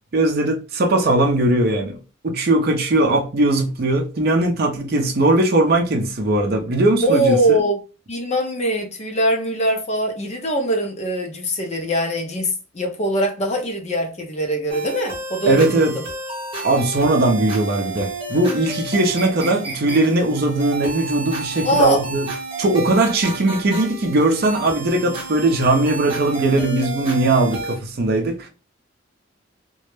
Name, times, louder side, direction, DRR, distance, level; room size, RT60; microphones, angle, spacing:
voice 1, 0.1-2.0 2.2-7.6 15.5-16.0 16.6-22.3 22.6-28.5, right 2 dB, 50° right, 0.5 m, -19 dB
voice 2, 7.0-7.8 8.1-16.0 21.6-22.0, right 1 dB, 35° left, 0.5 m, -22 dB
sound 1, 14.7-27.8, right 3 dB, 30° right, 0.8 m, -31 dB
2.2 x 2.0 x 3.0 m
head